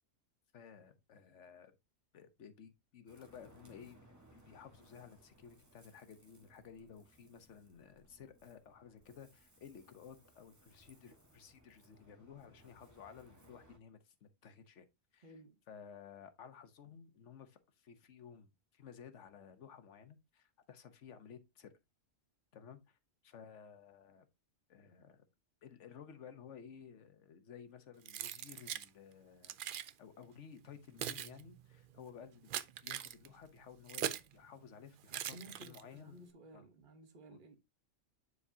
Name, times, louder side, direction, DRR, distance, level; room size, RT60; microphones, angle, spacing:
voice 1, 0.5-1.7 2.1-14.9 15.1-15.3 15.7-21.7 22.5-23.0 23.2-24.3 24.7-25.2 25.6-29.6 30.0-36.2 36.5-36.6 37.3-37.4, left 7 dB, 65° left, 1.3 m, -55 dB
Ocean, 3.1-13.8, right 1 dB, 15° right, 1.3 m, -65 dB
voice 2, 15.2-15.6 35.3-37.6, right 1 dB, 40° right, 1.2 m, -56 dB
Keys jangling, 28.0-28.9 29.4-29.9 30.6-34.3 35.1-36.0, right 10 dB, 60° right, 0.5 m, -42 dB
9.6 x 4.8 x 2.7 m
omnidirectional pair, 1.3 m